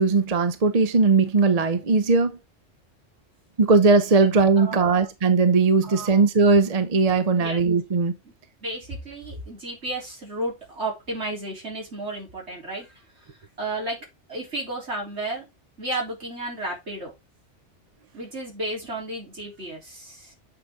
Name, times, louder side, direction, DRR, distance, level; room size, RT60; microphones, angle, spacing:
voice 1, 0.0-2.4 3.6-8.1, right 4 dB, 40° right, 0.7 m, -19 dB
voice 2, 4.6-5.1 5.8-6.2 7.4-7.6 8.2-8.3 8.6-13.0 13.6-14.0 14.3-15.4 15.8-17.1 18.1-20.3, right 1 dB, 60° right, 4.0 m, -33 dB
8.8 x 4.9 x 3.7 m
omnidirectional pair, 1.3 m